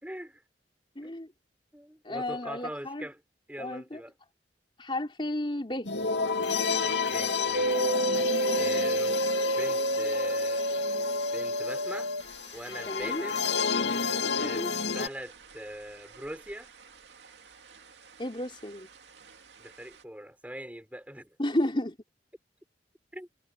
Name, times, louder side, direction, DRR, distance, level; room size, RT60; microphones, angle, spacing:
voice 1, 0.0-0.4 1.0-1.2 1.7-3.2 3.5-4.1 6.8-7.9 8.6-12.1 12.5-13.4 14.3-16.7 19.6-21.4 23.1-23.3, right 1 dB, 10° right, 6.1 m, -42 dB
voice 2, 1.0-1.3 2.0-3.1 3.6-4.0 4.8-5.9 12.9-13.3 14.2-14.7 18.2-18.9 21.4-22.0, left 1 dB, 30° left, 4.1 m, -32 dB
sound 1, 5.8-15.1, left 5 dB, 90° left, 2.4 m, -31 dB
sound 2, 7.5-16.9 17.2-18.1 18.4-19.4 19.7-19.8, right 1 dB, 85° right, 2.4 m, -31 dB
head